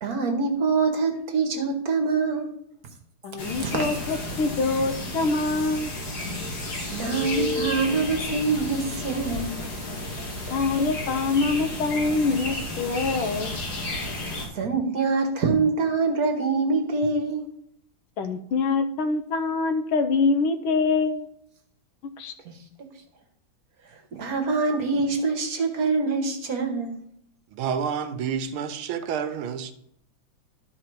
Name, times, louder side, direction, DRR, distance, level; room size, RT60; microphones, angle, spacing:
voice 1, 0.0-2.6 3.6-3.9 6.9-9.6 14.5-17.4 22.4-22.6 24.1-27.0, right 4 dB, 50° right, 1.3 m, -25 dB
voice 2, 3.2-5.9 10.5-13.6 18.2-21.3 22.2-22.3, left 3 dB, 75° left, 1.6 m, -25 dB
sound 1, 3.4-14.5, left 1 dB, 50° left, 2.2 m, -32 dB
voice 3, 27.5-29.7, right 7 dB, 80° right, 1.6 m, -29 dB
12.5 x 4.2 x 4.6 m
omnidirectional pair, 2.3 m